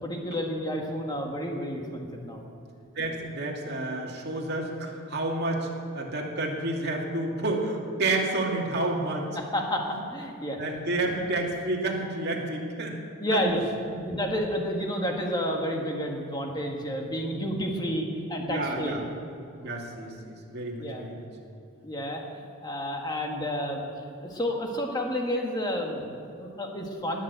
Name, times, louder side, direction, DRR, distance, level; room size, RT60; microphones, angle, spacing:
voice 1, 0.0-2.4 9.4-10.6 13.2-13.6 14.0-19.0 20.8-21.1 21.8-22.2 22.6-23.8 24.2-27.2, equal, 20° left, 1 dB, 1.7 m, -30 dB
voice 2, 3.0-5.7 5.9-9.3 10.6-13.0 13.3-13.4 13.9-14.2 18.4-19.0 19.6-21.3, right 2 dB, 50° right, -1 dB, 2.4 m, -30 dB
20.0 x 7.4 x 8.2 m, 2.6 s
head